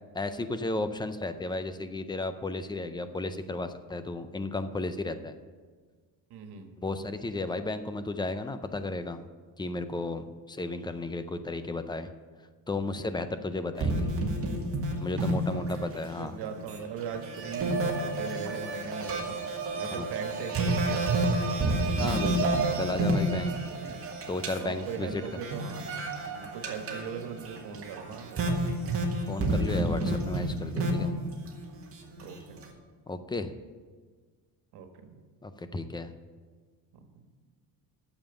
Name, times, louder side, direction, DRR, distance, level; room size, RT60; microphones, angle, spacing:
voice 1, 0.1-5.3 6.8-9.2 9.6-12.1 12.7-14.1 15.0-16.3 19.9-20.1 22.0-23.5 24.3-25.2 29.3-31.1 33.1-33.5 35.4-36.1, left 2 dB, 10° left, 10 dB, 0.5 m, -34 dB
voice 2, 6.3-6.7 15.5-19.4 19.8-21.3 23.7-24.0 24.6-26.0 26.3-29.0 32.2-32.6 34.7-35.2 36.9-37.2, right 6 dB, 90° right, 5 dB, 1.6 m, -40 dB
sound 1, 13.8-16.1 16.4-32.6, right 2 dB, 35° right, 1.7 m, -30 dB
9.1 x 7.2 x 8.9 m, 1.5 s
cardioid pair, 160°, 38 cm